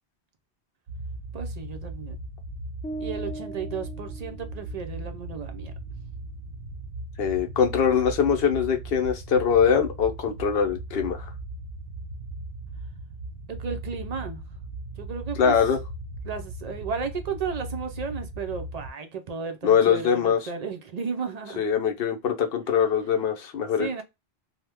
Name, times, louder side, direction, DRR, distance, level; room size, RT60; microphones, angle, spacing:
sound 1, 0.9-18.9, right 2 dB, 75° right, 0.9 m, -38 dB
voice 1, 1.3-2.2 3.0-5.7 13.5-14.4 15.0-15.6 16.2-21.6 23.8-24.0, right 5 dB, 50° right, 0.5 m, -34 dB
sound 2, 2.8-5.0, right 2 dB, 15° left, 0.5 m, -39 dB
voice 2, 7.2-11.3 15.4-15.8 19.6-20.5 21.6-24.0, left 7 dB, 70° left, 0.9 m, -23 dB
2.8 x 2.1 x 3.3 m
omnidirectional pair, 1.1 m